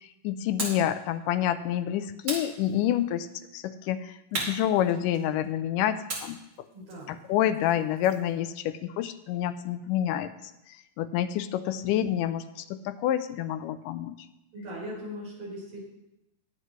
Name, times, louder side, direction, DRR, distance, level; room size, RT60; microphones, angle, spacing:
voice 1, 0.2-3.3 3.5-6.4 7.1-10.3 11.0-12.4 12.7-14.3, left 11 dB, 80° left, 10 dB, 2.1 m, -28 dB
sound 1, 0.6-0.9 2.2-3.2 4.3-5.4 6.1-8.3, right 2 dB, 35° right, 2.9 m, -37 dB
voice 2, 6.7-7.2 14.5-15.9, equal, 70° right, -5 dB, 6.4 m, -39 dB
20.5 x 8.2 x 3.1 m, 0.91 s
omnidirectional pair, 4.0 m